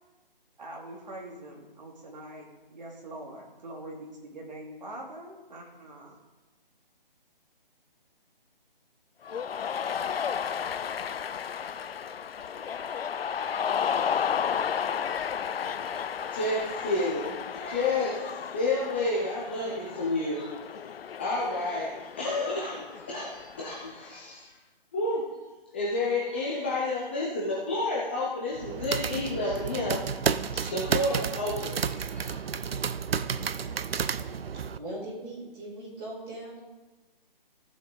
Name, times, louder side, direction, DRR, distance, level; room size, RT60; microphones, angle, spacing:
voice 1, 0.6-6.2, right 1 dB, 50° right, -1 dB, 2.6 m, -43 dB
Cheering, 9.2-24.1, left 7 dB, 85° left, 0.5 m, -33 dB
voice 2, 16.3-20.5 21.2-24.5 24.9-25.2 25.7-32.4, left 2 dB, 10° left, -6 dB, 0.7 m, -30 dB
sound 1, 28.5-34.8, right 6 dB, 90° right, 0.6 m, -31 dB
voice 3, 34.8-36.6, right 1 dB, 15° right, -8 dB, 2.8 m, -39 dB
15.0 x 7.3 x 3.9 m, 1.2 s
hypercardioid pair, 165°, 29 cm